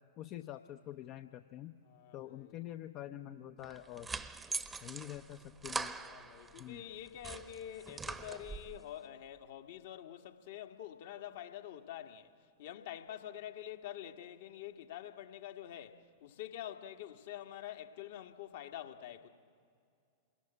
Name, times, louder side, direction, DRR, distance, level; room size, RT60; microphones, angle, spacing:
voice 1, 0.2-1.8 2.1-4.1 4.8-5.9 6.6-6.8, left 12 dB, 40° left, 0.7 m, -46 dB
voice 2, 1.8-2.6 5.9-12.3 12.6-19.3, left 11 dB, 55° left, 1.5 m, -47 dB
sound 1, 3.6-6.7 7.1-8.8, right 4 dB, 15° right, 1.0 m, -42 dB
27.0 x 21.0 x 9.9 m
figure-of-eight pair, 90°, 0 cm